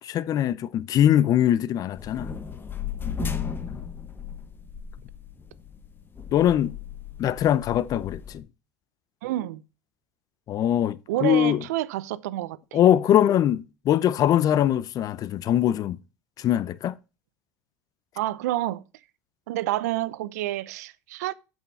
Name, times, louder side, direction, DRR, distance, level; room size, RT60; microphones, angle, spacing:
voice 1, 0.0-2.3 3.7-3.8 6.3-6.8 7.2-8.4 10.5-11.6 12.7-16.0 16.4-16.9, left 11 dB, 45° left, 0.6 m, -22 dB
sound 1, 2.0-8.4, left 7 dB, 25° left, 1.2 m, -35 dB
voice 2, 9.2-9.6 11.1-12.8 18.2-18.8 19.5-21.3, right 15 dB, 75° right, 0.7 m, -29 dB
8.2 x 6.5 x 4.1 m
hypercardioid pair, 85°, 9 cm